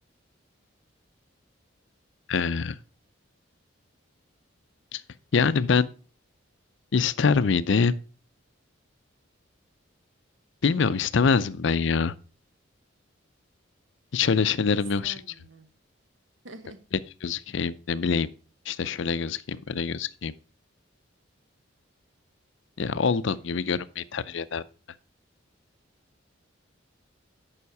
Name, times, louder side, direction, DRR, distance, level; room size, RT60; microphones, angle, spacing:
voice 1, 2.3-2.8 4.9-5.0 5.3-5.9 6.9-8.0 10.6-12.1 14.1-15.2 17.2-18.3 18.7-20.3 22.8-24.6, left 5 dB, 65° left, 0.5 m, -24 dB
voice 2, 14.7-15.7 16.4-16.8, right 2 dB, 70° right, 1.2 m, -46 dB
9.7 x 5.7 x 4.6 m
head